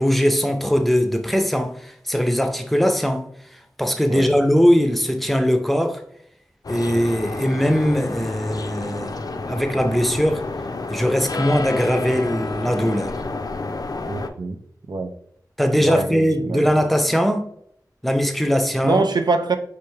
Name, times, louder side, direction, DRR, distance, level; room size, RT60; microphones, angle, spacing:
voice 1, 0.0-3.2 3.8-6.0 6.7-9.2 9.5-10.4 10.9-13.2 15.6-17.4 18.0-19.0, equal, ahead, 0.6 m, -20 dB
sound 1, 6.6-14.3, left 3 dB, 65° left, 0.4 m, -30 dB
voice 2, 14.1-14.6 14.9-15.1 15.7-16.7 18.8-19.6, right 3 dB, 85° right, 0.5 m, -24 dB
4.7 x 3.3 x 3.1 m
wide cardioid pair, 70°, 7 cm